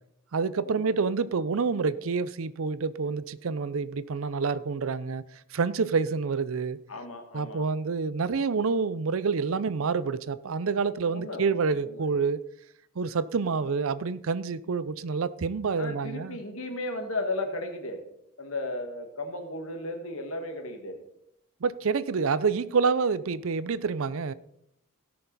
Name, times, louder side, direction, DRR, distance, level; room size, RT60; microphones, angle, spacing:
voice 1, 0.3-6.8 7.3-12.4 13.0-16.4 21.6-24.3, right 5 dB, 75° right, 0.5 m, -28 dB
voice 2, 6.9-7.6 11.1-11.5 11.9-12.1 15.8-18.0 18.4-21.0, left 2 dB, 80° left, 1.8 m, -35 dB
17.0 x 6.7 x 4.1 m
head